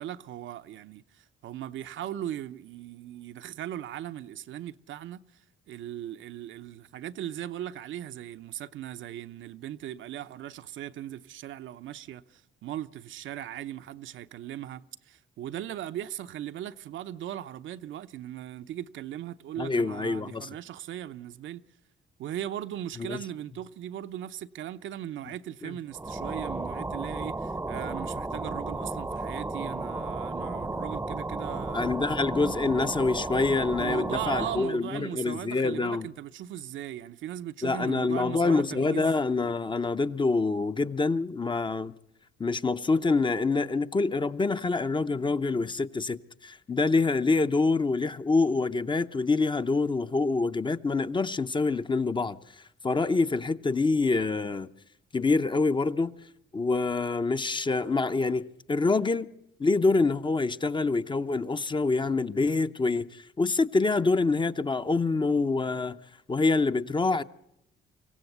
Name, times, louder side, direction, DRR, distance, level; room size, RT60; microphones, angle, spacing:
voice 1, 0.0-5.2 5.7-21.6 22.2-31.9 33.8-39.1, right 11 dB, 75° right, 0.7 m, -38 dB
voice 2, 19.6-20.5 23.0-23.2 25.6-25.8 31.7-36.1 37.6-41.9 42.4-52.4 52.8-54.7 55.1-56.1 56.5-59.3 59.6-66.0 66.3-67.2, left 3 dB, 25° left, 0.7 m, -26 dB
sound 1, 25.9-34.8, right 2 dB, 10° right, 0.7 m, -34 dB
24.5 x 16.0 x 8.0 m
cardioid pair, 90°, 20 cm